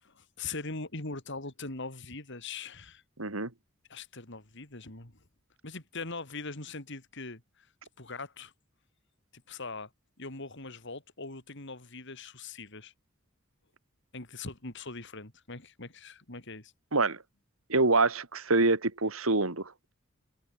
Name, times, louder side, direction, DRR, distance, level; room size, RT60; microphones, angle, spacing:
voice 1, 0.0-3.0 3.9-5.2 5.6-7.7 8.0-8.5 9.3-9.9 10.2-12.9 14.1-16.7, left 3 dB, 60° left, 3.9 m, -41 dB
voice 2, 3.2-3.5 16.9-17.2 17.7-19.9, right 3 dB, 85° right, 2.6 m, -26 dB
head